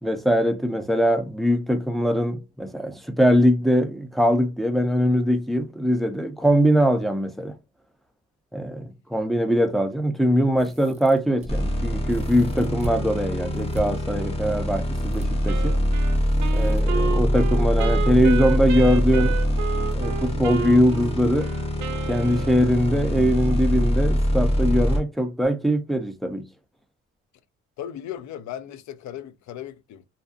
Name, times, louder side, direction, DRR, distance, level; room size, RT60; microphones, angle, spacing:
voice 1, 0.0-7.6 8.5-15.8 16.5-19.4 19.9-21.5 22.1-26.5, equal, ahead, 0.4 m, -22 dB
sound 1, 10.5-11.5 12.1-13.0 13.5-13.8 14.9-15.3 16.1-16.8 18.0-18.4 18.6-18.7 19.9-20.0 20.4-20.5, equal, 20° right, 0.7 m, -40 dB
sound 2, 11.5-25.0, equal, 20° left, 0.7 m, -24 dB
Wind instrument woodwind instrument, 15.5-23.0, right 8 dB, 65° right, 0.5 m, -32 dB
voice 2, 27.8-30.1, left 10 dB, 70° left, 0.4 m, -36 dB
2.6 x 2.2 x 2.4 m
cardioid pair, 90°, 30 cm